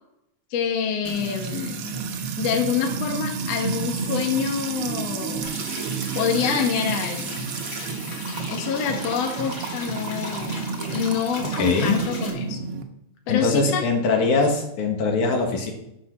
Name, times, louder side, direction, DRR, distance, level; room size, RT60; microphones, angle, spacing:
voice 1, 0.5-1.8 2.4-5.5 6.2-7.5 8.5-10.6 10.9-12.6 13.3-13.8, left 7 dB, 65° left, 2 dB, 2.1 m, -26 dB
Music / Water tap faucet / Trickle dribble, 1.0-12.8, right 5 dB, 65° right, 1.5 m, -30 dB
sound 1, 5.4-12.3, left 2 dB, 35° left, 1.5 m, -37 dB
voice 2, 11.6-12.0 13.3-15.7, left 4 dB, 80° left, 2 dB, 3.0 m, -22 dB
9.8 x 4.9 x 6.1 m, 0.81 s
omnidirectional pair, 3.4 m